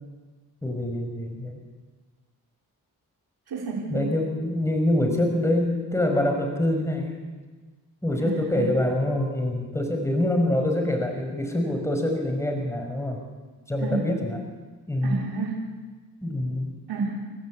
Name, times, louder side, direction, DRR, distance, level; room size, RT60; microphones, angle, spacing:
voice 1, 0.6-1.6 3.9-7.2 8.0-13.2 13.7-14.4 14.9-15.2 16.2-16.7, left 1 dB, 5° left, 2 dB, 5.4 m, -25 dB
voice 2, 3.5-4.0 8.2-8.7 13.8-14.0 15.0-15.7 16.9-17.2, right 3 dB, 80° right, -2 dB, 4.1 m, -30 dB
29.0 x 14.5 x 8.6 m, 1.3 s
cardioid pair, 60°, 38 cm